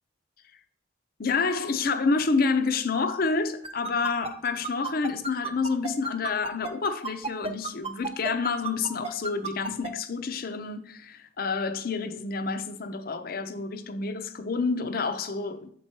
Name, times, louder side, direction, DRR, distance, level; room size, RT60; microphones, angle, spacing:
voice 1, 1.2-15.7, left 4 dB, 45° left, 0.6 m, -28 dB
sound 1, 3.6-9.9, right 3 dB, 30° right, 0.7 m, -32 dB
7.2 x 4.6 x 4.4 m
head